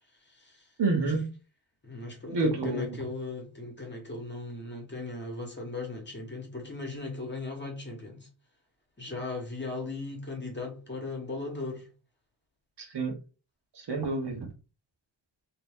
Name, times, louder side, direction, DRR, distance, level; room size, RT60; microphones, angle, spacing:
voice 1, 0.2-0.7 1.0-1.1 1.8-8.3 9.0-11.9, left 3 dB, 25° left, 1.1 m, -38 dB
voice 2, 0.8-1.3 2.3-3.0 12.8-13.2 13.8-14.4, right 3 dB, 60° right, 1.0 m, -28 dB
3.6 x 2.9 x 3.5 m
wide cardioid pair, 170°, 47 cm